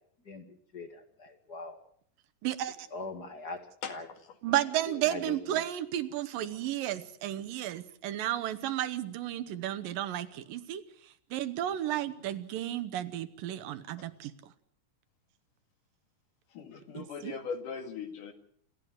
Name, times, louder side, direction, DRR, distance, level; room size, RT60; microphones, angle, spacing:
voice 1, 0.7-1.8 2.9-4.1 4.9-5.4, left 3 dB, 35° left, 7 dB, 2.1 m, -41 dB
voice 2, 2.4-2.8 4.4-10.8 11.3-14.3 16.9-17.3, right 12 dB, 90° right, 12 dB, 2.8 m, -33 dB
voice 3, 3.8-4.4 12.1-12.2 14.0-14.1 16.5-18.3, left 6 dB, 70° left, 6 dB, 3.6 m, -40 dB
28.0 x 13.5 x 7.9 m, 0.64 s
omnidirectional pair, 3.8 m